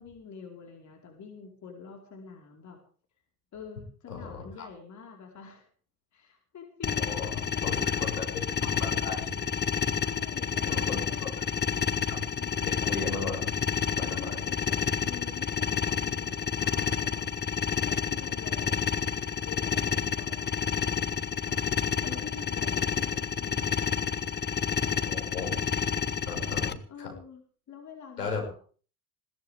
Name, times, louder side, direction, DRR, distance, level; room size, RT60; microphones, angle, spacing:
voice 1, 0.0-2.8 3.5-5.7 6.1-8.9 10.0-11.6 12.4-12.5 14.0-17.3 17.8-18.9 19.4-23.9 24.8-25.3 26.9-28.5, left 6 dB, 40° left, 1 dB, 4.7 m, -47 dB
voice 2, 4.1-4.7 7.0-7.3 7.6-9.5 10.7-11.3 11.9-12.2 12.6-13.5 13.9-14.4 25.0-25.6 26.3-27.1 28.2-28.4, left 4 dB, 85° left, 1 dB, 6.5 m, -37 dB
sound 1, 6.8-26.7, left 7 dB, 20° left, 1.2 m, -29 dB
21.5 x 17.5 x 3.6 m, 0.42 s
figure-of-eight pair, 70°, 46 cm